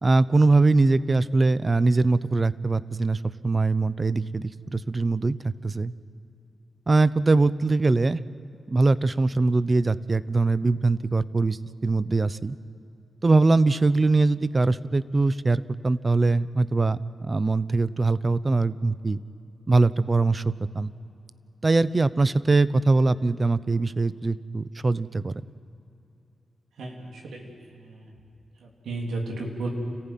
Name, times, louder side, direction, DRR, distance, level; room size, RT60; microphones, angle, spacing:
voice 1, 0.0-5.9 6.9-8.2 8.7-12.6 13.2-19.2 19.7-20.9 21.6-25.3, right 3 dB, 35° right, 16 dB, 0.7 m, -22 dB
voice 2, 26.8-28.1 28.6-29.7, right 2 dB, 90° right, 0 dB, 3.5 m, -34 dB
29.5 x 15.0 x 9.2 m, 2.7 s
cardioid pair, 60°, 0 cm